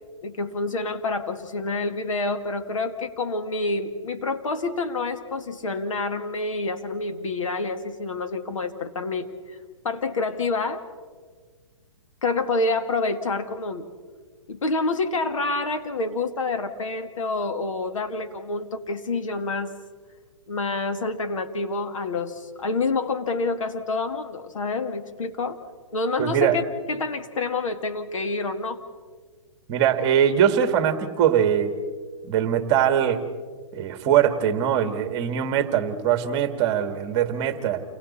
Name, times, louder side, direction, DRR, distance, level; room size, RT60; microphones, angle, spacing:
voice 1, 0.2-9.6 9.8-10.8 12.2-13.9 14.5-19.7 20.5-25.6 25.9-28.8, left 3 dB, 85° left, 7 dB, 2.2 m, -28 dB
voice 2, 26.2-26.6 29.7-31.7 32.2-33.2 33.7-37.8, right 9 dB, 25° right, 9 dB, 1.7 m, -22 dB
29.0 x 22.0 x 4.3 m, 1.5 s
hypercardioid pair, 160°, 16 cm